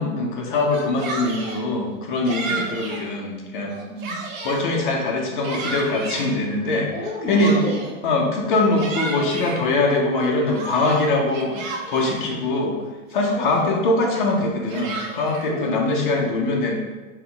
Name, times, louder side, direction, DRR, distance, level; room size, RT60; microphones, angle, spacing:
voice 1, 0.0-3.7 4.4-6.9 7.3-7.6 8.0-11.5 11.9-12.7 13.1-16.7, left 2 dB, 40° left, 0 dB, 0.7 m, -22 dB
Yell, 0.6-1.6 2.3-3.1 3.6-4.7 5.2-6.3 7.0-8.0 8.5-9.6 10.1-12.2 12.8-12.9 13.2-13.7 14.4-15.5, right 3 dB, 75° right, 0.9 m, -32 dB
voice 2, 2.3-2.7 3.9-4.3 6.9-7.9 11.4-11.7 13.3-13.9 15.4-15.9, left 1 dB, 55° left, -2 dB, 1.5 m, -32 dB
4.4 x 2.2 x 3.7 m, 1.2 s
supercardioid pair, 175°, 40 cm